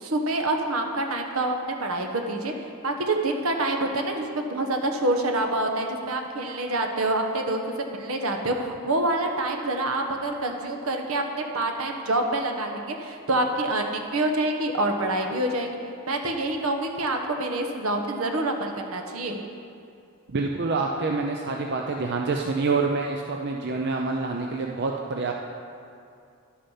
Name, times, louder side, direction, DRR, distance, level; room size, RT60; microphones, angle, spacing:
voice 1, 0.0-2.5 2.8-15.8 16.1-19.4, right 2 dB, 75° right, 3 dB, 1.2 m, -26 dB
voice 2, 20.3-25.3, right 3 dB, 50° right, 1 dB, 0.6 m, -27 dB
11.5 x 8.6 x 5.7 m, 2.5 s
head